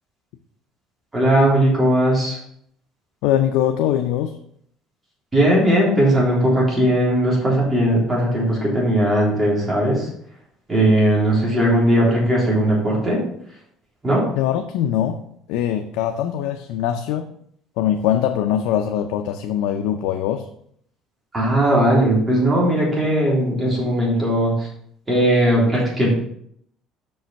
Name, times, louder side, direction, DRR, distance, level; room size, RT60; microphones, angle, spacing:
voice 1, 1.1-2.4 5.3-10.1 10.7-13.2 14.0-14.2 21.3-24.7 25.1-26.1, right 1 dB, 15° right, -4 dB, 3.4 m, -18 dB
voice 2, 3.2-4.4 14.4-15.2 15.5-17.3 17.8-20.5, left 10 dB, 85° left, 5 dB, 0.5 m, -22 dB
6.1 x 5.4 x 5.8 m, 0.68 s
cardioid pair, 140°, 0 cm